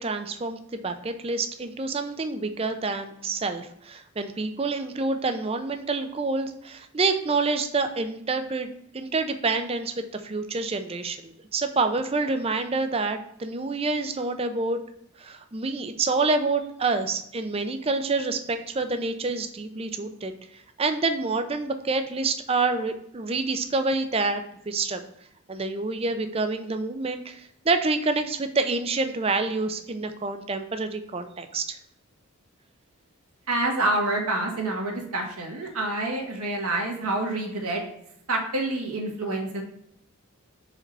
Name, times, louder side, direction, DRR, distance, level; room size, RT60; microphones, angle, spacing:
voice 1, 0.0-8.7 8.9-14.8 15.2-20.3 20.8-25.1 25.5-31.8, right 3 dB, 25° right, 8 dB, 0.5 m, -27 dB
voice 2, 33.5-37.8 38.3-39.6, right 2 dB, 85° right, 1 dB, 1.6 m, -27 dB
5.0 x 4.4 x 5.3 m, 0.73 s
head